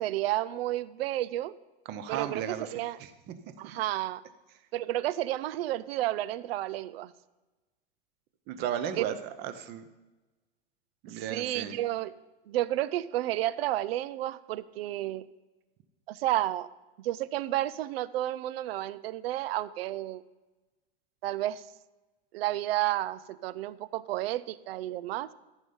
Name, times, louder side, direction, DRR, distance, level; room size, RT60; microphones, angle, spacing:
voice 1, 0.0-1.5 2.1-3.0 3.6-4.2 4.7-7.1 8.9-9.2 11.1-12.1 12.5-15.3 16.1-16.7 17.0-20.2 21.2-21.7 22.3-25.3, right 14 dB, 85° right, 18 dB, 0.6 m, -31 dB
voice 2, 1.9-2.7 3.0-3.3 8.5-9.8 11.0-11.8, right 9 dB, 35° right, 10 dB, 0.8 m, -35 dB
14.5 x 5.5 x 5.5 m, 1.1 s
supercardioid pair, 160°, 30 cm